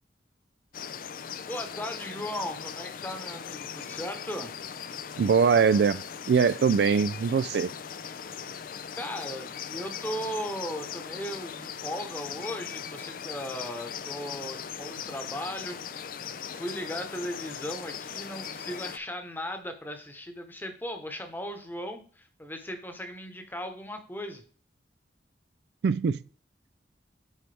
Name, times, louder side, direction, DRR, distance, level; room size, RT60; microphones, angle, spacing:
sound 1, 0.7-19.0, left 7 dB, 50° left, 0.4 m, -39 dB
voice 1, 1.4-4.5 8.9-16.1 16.5-24.4, equal, 10° left, 1.1 m, -37 dB
voice 2, 5.2-7.7 25.8-26.2, right 6 dB, 65° right, 0.3 m, -22 dB
10.0 x 4.5 x 3.4 m
head